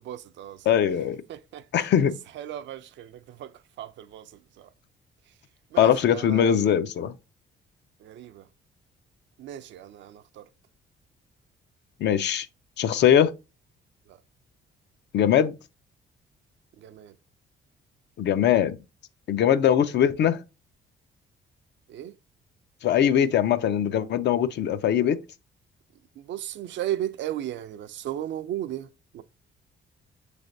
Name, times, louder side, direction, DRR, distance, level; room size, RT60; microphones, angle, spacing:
voice 1, 0.0-0.8 1.3-1.7 2.3-4.3 4.6-4.7 5.7-6.5 8.0-8.5 9.4-10.5 14.1-14.2 16.8-17.1 21.9-22.2 26.2-28.9 29.1-29.2, right 12 dB, 70° right, 0.4 m, -35 dB
voice 2, 0.7-1.2 1.7-2.2 5.8-7.1 12.0-12.5 12.8-13.3 15.1-15.5 18.2-18.8 19.3-20.4 22.8-25.2, left 9 dB, 60° left, 0.4 m, -21 dB
5.7 x 3.3 x 2.6 m
cardioid pair, 90°, 20 cm